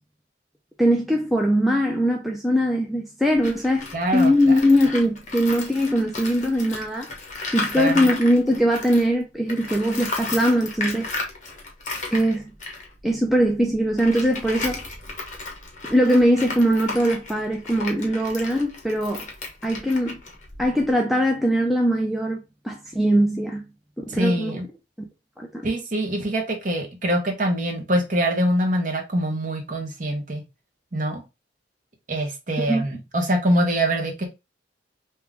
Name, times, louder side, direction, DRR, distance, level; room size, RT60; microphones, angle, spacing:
voice 1, 0.8-3.9 4.1-7.1 7.5-11.1 12.1-12.5 13.0-14.8 15.9-19.2 19.6-20.2 20.6-23.6 24.0-24.6 25.0-25.1 25.4-25.7 32.6-32.8, equal, ahead, 0.4 m, -21 dB
Tools, 3.3-9.1 9.5-20.9, left 3 dB, 40° left, 1.1 m, -34 dB
voice 2, 3.9-4.3 7.7-8.1 24.1-24.6 25.6-30.4 30.9-31.2 32.1-34.2, right 1 dB, 45° right, 1.1 m, -24 dB
3.6 x 2.9 x 3.5 m
head